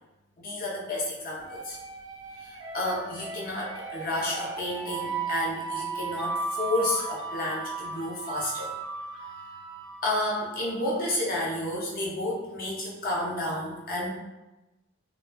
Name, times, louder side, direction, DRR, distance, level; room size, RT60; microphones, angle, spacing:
voice 1, 0.4-1.8 2.4-8.7 10.0-14.1, left 1 dB, 45° left, -3 dB, 0.6 m, -31 dB
sound 1, 1.4-11.1, right 4 dB, 20° right, 0.4 m, -36 dB
2.5 x 2.2 x 2.2 m, 1.0 s
head